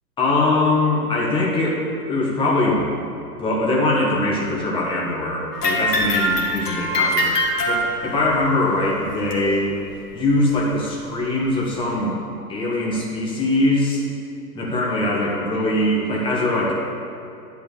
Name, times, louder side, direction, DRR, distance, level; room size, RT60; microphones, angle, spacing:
voice 1, 0.2-7.4 7.6-9.8 10.1-12.2 12.5-14.0 14.5-16.7, left 2 dB, 10° left, -4 dB, 1.3 m, -22 dB
sound 1, 5.5-8.3 9.3-9.4 10.2-10.3 11.2-11.3, equal, 70° left, 1.8 m, -22 dB
10.5 x 4.6 x 6.7 m, 2.7 s
figure-of-eight pair, 110°, 49 cm